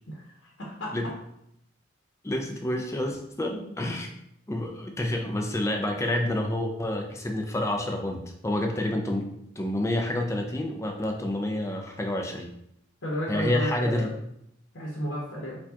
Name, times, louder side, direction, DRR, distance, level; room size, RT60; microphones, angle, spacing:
voice 1, 0.1-0.9 3.5-4.1 13.0-14.1 14.7-15.6, equal, 80° left, -4 dB, 0.9 m, -33 dB
voice 2, 2.2-4.1 4.5-9.3 9.6-12.5 13.3-14.1, left 1 dB, 15° left, 3 dB, 0.4 m, -28 dB
4.5 x 2.3 x 2.8 m, 0.76 s
head